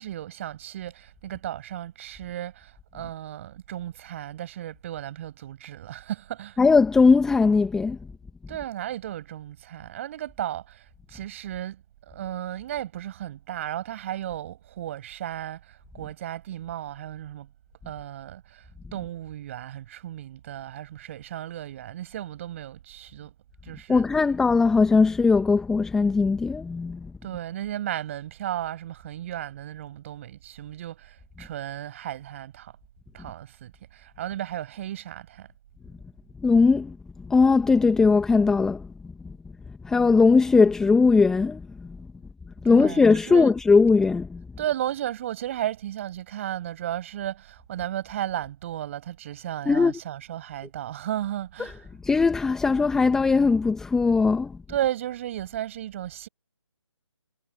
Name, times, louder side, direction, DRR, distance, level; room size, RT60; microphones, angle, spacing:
voice 1, 0.0-6.6 8.5-17.5 17.8-18.6 18.9-23.3 23.6-24.1 27.2-32.7 33.1-35.5 42.6-43.5 44.6-51.8 54.7-56.3, right 12 dB, 25° right, 5.9 m, -34 dB
voice 2, 6.6-8.0 23.9-27.1 36.4-37.0 37.3-38.9 39.2-39.3 39.8-42.0 42.6-44.4 49.6-50.0 51.6-54.6, left 4 dB, 5° left, 1.6 m, -20 dB
figure-of-eight pair, 150°, 16 cm